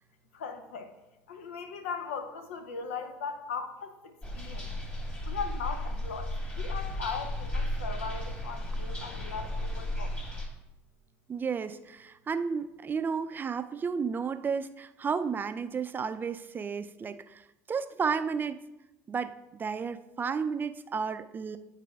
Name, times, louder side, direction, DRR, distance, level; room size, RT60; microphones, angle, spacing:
voice 1, 0.3-0.9 1.3-4.7 5.2-10.2, left 5 dB, 90° left, 7 dB, 0.6 m, -38 dB
sound 1, 4.2-10.5, left 1 dB, 25° left, 1.9 m, -34 dB
voice 2, 11.3-18.6 19.1-21.6, right 6 dB, 30° right, 10 dB, 0.4 m, -32 dB
10.0 x 4.1 x 2.3 m, 0.96 s
hypercardioid pair, 75°, 7 cm